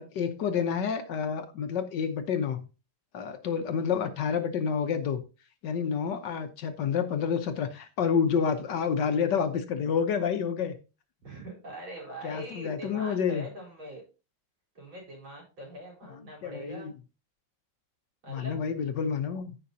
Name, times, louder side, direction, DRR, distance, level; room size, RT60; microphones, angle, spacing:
voice 1, 0.0-2.7 3.1-5.2 5.6-10.7 12.2-13.4 16.1-16.9 18.3-19.5, left 6 dB, 65° left, 1.4 m, -29 dB
voice 2, 11.2-14.0 14.7-16.9 18.2-18.6, right 1 dB, 75° right, 5.2 m, -42 dB
14.5 x 5.7 x 2.7 m
omnidirectional pair, 2.2 m